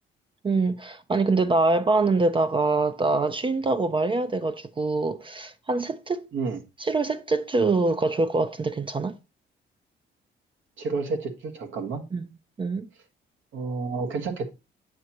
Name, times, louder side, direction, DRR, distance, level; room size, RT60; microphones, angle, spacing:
voice 1, 0.4-6.3 6.8-9.2 12.1-12.3 12.6-12.9, right 3 dB, 25° right, 0.5 m, -24 dB
voice 2, 10.8-12.0 13.5-14.5, right 4 dB, 75° right, 1.5 m, -30 dB
7.9 x 6.3 x 2.8 m
cardioid pair, 90°, 20 cm